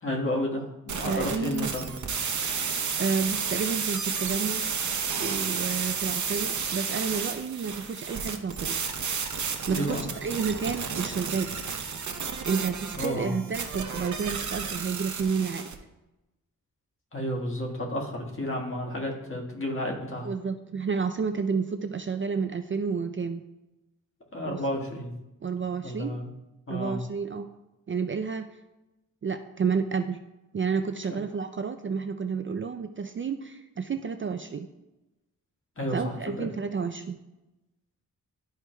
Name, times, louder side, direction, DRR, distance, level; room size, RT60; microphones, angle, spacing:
voice 1, 0.0-1.9 9.7-10.0 13.0-13.4 17.1-20.3 24.3-25.1 25.8-26.3 26.7-27.0 31.1-31.2 35.8-36.5, left 1 dB, 40° left, -1 dB, 1.5 m, -31 dB
sound 1, 0.9-15.7, right 6 dB, 60° right, 0.8 m, -32 dB
voice 2, 1.1-1.7 3.0-4.6 5.2-8.8 9.7-11.5 12.4-15.7 20.2-23.5 24.4-24.6 25.4-26.2 26.7-27.5 27.9-28.5 29.2-30.2 30.5-34.7 35.9-37.2, right 5 dB, 35° right, 7 dB, 0.4 m, -30 dB
12.5 x 4.6 x 2.2 m, 0.97 s
wide cardioid pair, 100°, 33 cm